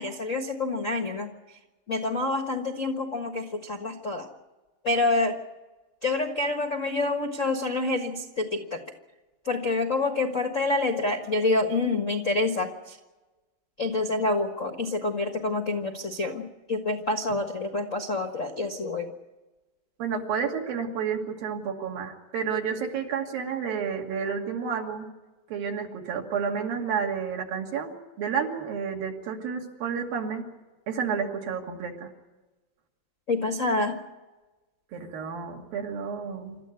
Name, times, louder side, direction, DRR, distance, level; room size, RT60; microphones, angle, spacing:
voice 1, 0.0-1.3 1.9-4.3 4.8-5.4 6.0-8.8 9.4-13.0 13.8-19.1 33.3-34.0, left 2 dB, 60° left, 5 dB, 0.8 m, -27 dB
voice 2, 20.0-25.1 25.5-30.5 30.9-32.1 34.9-36.6, right 6 dB, 85° right, 1 dB, 4.2 m, -30 dB
27.0 x 13.5 x 9.6 m, 1.1 s
omnidirectional pair, 4.0 m